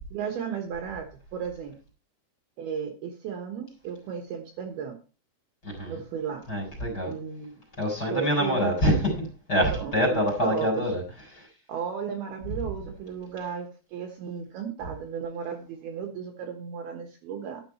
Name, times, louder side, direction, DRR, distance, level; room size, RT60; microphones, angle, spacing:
voice 1, 0.1-1.1 1.3-1.8 2.6-5.0 5.9-6.4 7.1-7.5 8.1-8.7 9.7-10.9 11.7-17.6, right 7 dB, 70° right, 2.7 m, -34 dB
voice 2, 5.6-6.0 6.5-7.1 7.8-11.0 11.3-11.5, equal, 20° left, 3.9 m, -26 dB
11.5 x 8.1 x 4.4 m
omnidirectional pair, 5.4 m